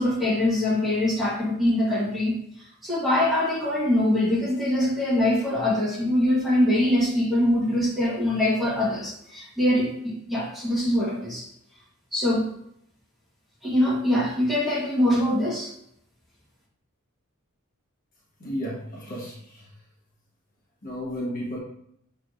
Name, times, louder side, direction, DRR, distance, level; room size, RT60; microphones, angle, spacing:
voice 1, 0.0-2.3 2.6-11.5 12.1-12.5 13.6-15.7, left 1 dB, ahead, -7 dB, 1.2 m, -23 dB
voice 2, 18.4-19.7 20.8-21.6, equal, 40° left, -4 dB, 1.1 m, -33 dB
6.8 x 3.2 x 2.4 m, 0.73 s
head